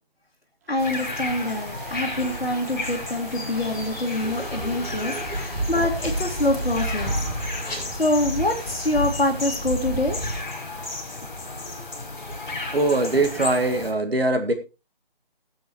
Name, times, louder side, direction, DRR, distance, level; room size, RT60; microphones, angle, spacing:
Applause, 0.6-9.3, right 3 dB, 15° right, 1.2 m, -45 dB
voice 1, 0.7-7.2 7.9-10.4, left 2 dB, 70° left, 0 dB, 2.1 m, -25 dB
sound 1, 0.8-13.9, left 3 dB, 50° left, 4.3 m, -34 dB
sound 2, 3.5-10.4, right 1 dB, 10° left, 5.0 m, -31 dB
voice 2, 4.6-5.2 12.7-14.5, right 2 dB, 80° right, 6 dB, 1.9 m, -23 dB
21.0 x 7.8 x 3.0 m, 0.27 s
figure-of-eight pair, 155°, 30 cm